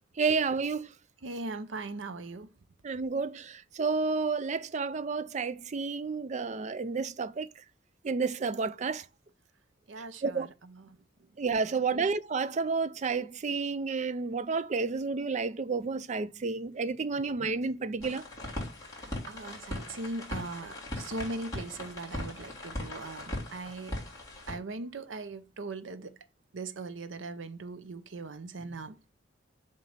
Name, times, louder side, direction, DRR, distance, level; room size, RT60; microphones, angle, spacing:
voice 1, 0.2-0.9 2.8-7.5 8.0-9.0 10.2-10.5 11.4-18.3, right 4 dB, 40° right, 0.4 m, -31 dB
voice 2, 1.2-2.5 9.9-11.0 19.0-24.0 24.5-26.2 26.5-29.1, right 2 dB, 90° right, 0.7 m, -40 dB
sound 1, 18.0-24.6, left 1 dB, 20° left, 3.5 m, -39 dB
7.3 x 3.3 x 5.7 m
head